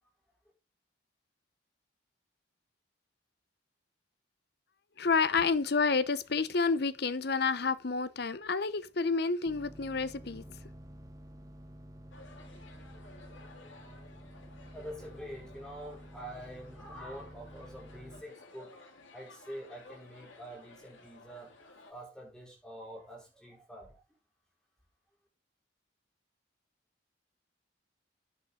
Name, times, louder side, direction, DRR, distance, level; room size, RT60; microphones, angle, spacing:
voice 1, 5.0-10.6, left 4 dB, 55° left, 0.7 m, -29 dB
sound 1, 9.5-18.2, equal, 20° right, 1.0 m, -50 dB
sound 2, 12.1-21.9, left 2 dB, 75° left, 3.2 m, -55 dB
voice 2, 13.9-14.5 14.7-18.8 19.1-21.6 21.9-24.0, equal, 5° left, 4.9 m, -46 dB
10.0 x 9.2 x 3.8 m
head